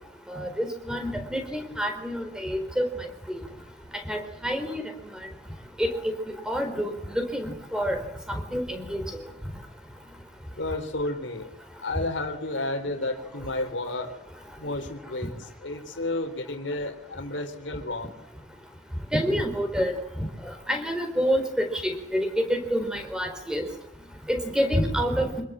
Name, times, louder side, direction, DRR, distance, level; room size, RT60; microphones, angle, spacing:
voice 1, 0.3-3.4 4.1-5.3 5.8-6.0 6.5-8.0 8.3-9.0 19.1-23.7 24.3-25.4, equal, 5° right, 6 dB, 4.3 m, -28 dB
voice 2, 10.6-11.5 11.8-14.2 14.6-18.2, left 2 dB, 85° left, 6 dB, 3.7 m, -31 dB
26.5 x 21.5 x 7.6 m, 0.85 s
head